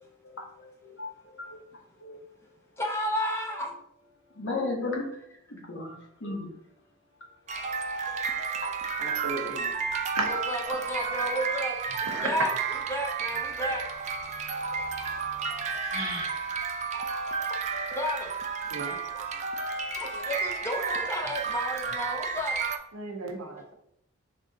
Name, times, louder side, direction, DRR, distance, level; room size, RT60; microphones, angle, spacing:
voice 1, 0.2-1.6 2.0-2.2 4.3-5.0 5.5-6.5 17.9-18.0 19.5-19.6 19.9-20.0, left 3 dB, 60° left, 0 dB, 1.0 m, -35 dB
voice 2, 2.8-3.7 10.2-12.5 12.9-13.8 17.3-17.5 17.9-18.3 20.0-22.6, equal, 10° left, 1 dB, 0.6 m, -32 dB
sound 1, 7.5-22.8, right 5 dB, 35° right, 0.3 m, -32 dB
voice 3, 9.0-9.7 10.2-10.3 12.1-12.3 15.9-16.4 18.7-18.9 22.9-23.7, right 3 dB, 90° right, 3 dB, 0.9 m, -35 dB
4.0 x 3.5 x 2.7 m, 0.74 s
head